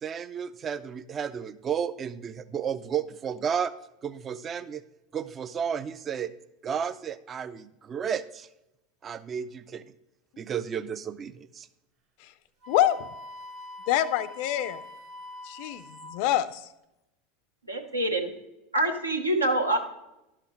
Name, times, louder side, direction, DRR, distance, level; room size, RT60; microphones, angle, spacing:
voice 1, 0.0-3.7 4.0-4.8 5.1-6.3 6.6-8.5 9.0-9.8 10.4-11.7, right 7 dB, 30° right, 14 dB, 0.3 m, -32 dB
Wind instrument woodwind instrument, 12.6-16.2, left 1 dB, 45° right, 1.2 m, -44 dB
voice 2, 12.7-13.1 13.9-14.8 15.4-15.8 16.1-16.7, left 12 dB, 55° left, 17 dB, 0.4 m, -26 dB
voice 3, 17.7-18.3 18.7-19.8, right 1 dB, 90° right, 3 dB, 0.9 m, -25 dB
11.5 x 5.7 x 3.0 m, 0.91 s
figure-of-eight pair, 80°, 0 cm